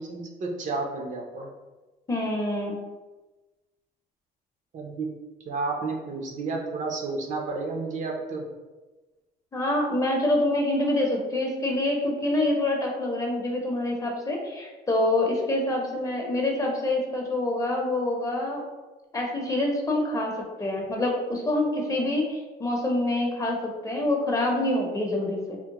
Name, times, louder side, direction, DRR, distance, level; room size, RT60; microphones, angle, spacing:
voice 1, 0.0-1.5 4.7-5.1 5.5-8.4, right 3 dB, 50° right, 1 dB, 0.5 m, -31 dB
voice 2, 2.1-2.8 9.5-18.6 19.1-25.6, left 1 dB, 20° left, 0 dB, 0.6 m, -26 dB
3.5 x 2.1 x 2.9 m, 1.2 s
cardioid pair, 110°, 17 cm